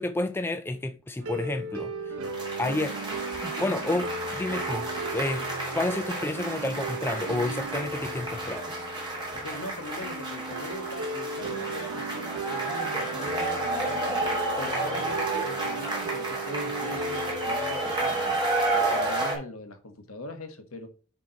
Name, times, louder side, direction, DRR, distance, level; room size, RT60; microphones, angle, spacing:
voice 1, 0.0-2.2 2.6-3.0 3.6-5.5 5.7-8.7, left 2 dB, 10° left, 0.3 m, -30 dB
sound 1, 1.2-19.2, right 2 dB, 75° right, 0.9 m, -37 dB
sound 2, 2.2-19.4, right 2 dB, 20° right, 2.7 m, -31 dB
voice 2, 9.3-14.2 14.6-18.3 18.7-20.9, left 2 dB, 70° left, 1.4 m, -41 dB
9.9 x 3.5 x 3.9 m
head